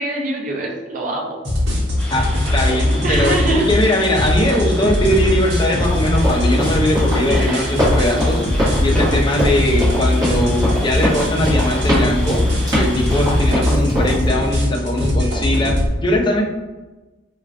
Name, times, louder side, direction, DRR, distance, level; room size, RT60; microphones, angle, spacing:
voice 1, 0.0-1.4 3.0-3.7 4.2-4.3 7.3-7.7, right 2 dB, 45° right, 0 dB, 0.6 m, -24 dB
sound 1, 1.4-15.9, left 1 dB, 70° right, 0.9 m, -20 dB
sound 2, 2.0-13.5, equal, 5° left, 0.8 m, -33 dB
voice 2, 2.1-3.4 3.7-12.4 12.7-16.4, left 1 dB, 25° left, 0 dB, 0.5 m, -20 dB
Run, 5.8-14.3, equal, 20° right, 1.2 m, -23 dB
4.3 x 2.3 x 2.5 m, 1.1 s
head